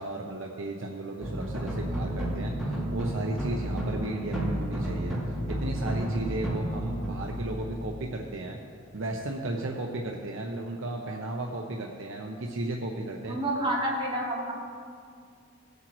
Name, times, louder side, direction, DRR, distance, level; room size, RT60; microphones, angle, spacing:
voice 1, 0.0-5.2 5.5-8.6 8.9-13.4, right 2 dB, 65° right, 1 dB, 0.8 m, -34 dB
sound 1, 1.2-8.5, right 1 dB, ahead, 2.7 m, -32 dB
voice 2, 13.3-14.5, right 1 dB, 25° right, -7 dB, 3.1 m, -29 dB
19.0 x 8.0 x 3.1 m, 2.2 s
head